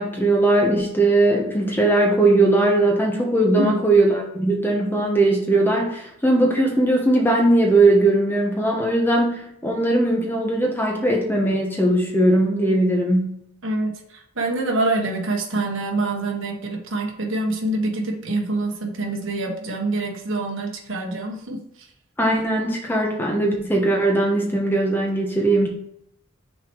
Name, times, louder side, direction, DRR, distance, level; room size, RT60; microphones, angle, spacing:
voice 1, 0.0-13.4 22.2-25.7, right 2 dB, 10° left, 0 dB, 1.1 m, -19 dB
voice 2, 13.6-21.9, right 2 dB, 70° right, 2 dB, 1.3 m, -26 dB
6.2 x 4.4 x 4.6 m, 0.74 s
head